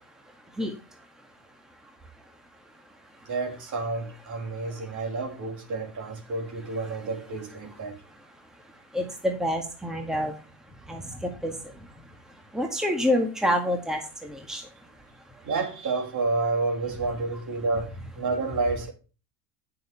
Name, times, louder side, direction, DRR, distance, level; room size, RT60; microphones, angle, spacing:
voice 1, 3.3-8.0 15.4-18.9, right 3 dB, 40° right, 3.1 m, -29 dB
voice 2, 8.9-10.3 10.9-11.0 11.4-11.5 12.5-14.6, left 1 dB, ahead, 1.9 m, -27 dB
9.5 x 6.7 x 4.5 m
hypercardioid pair, 80°, 47 cm